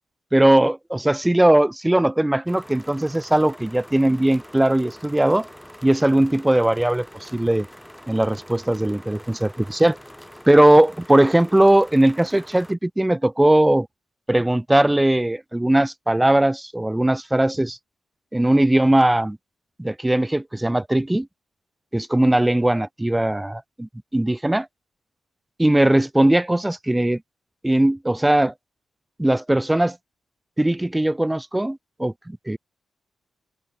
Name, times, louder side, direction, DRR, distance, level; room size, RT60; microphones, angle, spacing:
voice 1, 0.3-5.5 5.8-7.7 8.1-10.0 10.5-13.9 14.3-17.8 18.3-19.4 19.8-21.3 21.9-24.7 25.6-27.2 27.6-28.5 29.2-30.0 30.6-32.6, right 1 dB, 15° right, 0.7 m, -19 dB
sound 1, 2.5-12.7, equal, 5° left, 5.6 m, -44 dB
open air
supercardioid pair, 50°, 0 cm